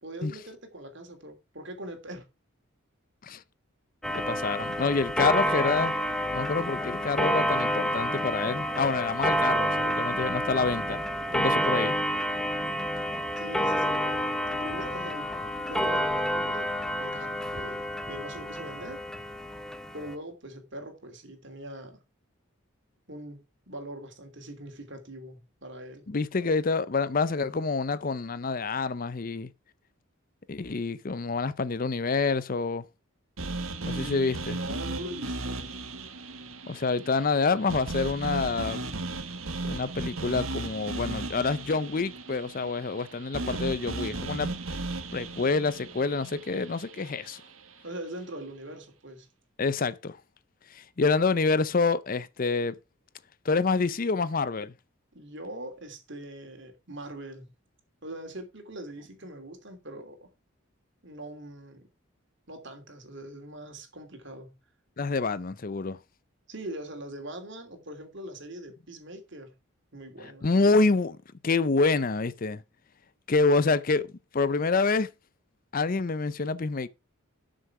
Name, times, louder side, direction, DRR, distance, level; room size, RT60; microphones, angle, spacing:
voice 1, 0.0-2.3 13.4-15.3 15.7-16.7 17.0-19.0 19.9-22.0 23.1-26.0 33.8-35.7 47.8-49.3 55.1-57.5 58.0-60.3 61.0-61.8 62.5-64.5 66.5-69.5 69.9-70.5, right 1 dB, 55° right, 3.0 m, -42 dB
Clock, 4.0-20.1, equal, 5° left, 0.8 m, -29 dB
voice 2, 4.1-5.9 6.3-11.0 11.3-11.9 26.1-29.5 30.5-32.8 33.8-34.6 36.7-38.8 39.6-44.6 45.1-47.4 49.6-50.2 50.7-52.7 53.4-54.7 65.0-66.0 70.4-71.2 71.4-72.6 73.3-74.1 74.3-75.1 75.7-76.9, left 4 dB, 40° left, 0.5 m, -27 dB
sound 1, 33.4-47.5, right 2 dB, 80° right, 1.7 m, -36 dB
12.5 x 6.5 x 4.7 m
head